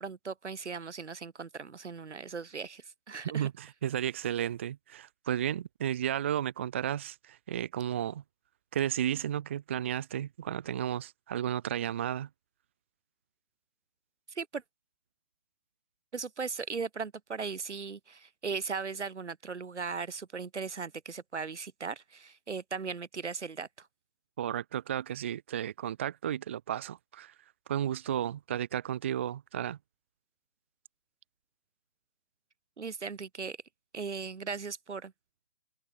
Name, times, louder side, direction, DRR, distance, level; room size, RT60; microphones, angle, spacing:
voice 1, 0.0-3.5 14.3-14.6 16.1-23.9 32.8-33.6 33.9-35.1, right 5 dB, 70° right, 5.0 m, -38 dB
voice 2, 3.3-8.2 8.7-12.3 24.4-27.3 27.7-29.8, right 10 dB, 10° right, 1.2 m, -33 dB
hypercardioid pair, 180°, 36 cm